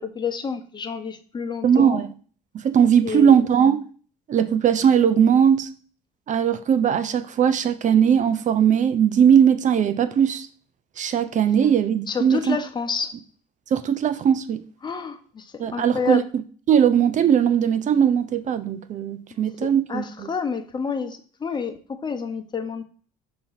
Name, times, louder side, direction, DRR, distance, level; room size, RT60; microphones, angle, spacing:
voice 1, 0.0-2.0 3.0-3.4 11.6-11.7 12.1-13.1 14.8-16.2 19.9-22.8, left 6 dB, 25° left, 1.0 m, -29 dB
voice 2, 1.6-2.1 2.5-3.8 4.3-5.7 6.3-10.5 11.0-12.6 13.7-14.6 15.6-16.2 16.7-20.3, right 8 dB, 50° right, 0.7 m, -19 dB
6.2 x 3.0 x 5.7 m
supercardioid pair, 85°, 17 cm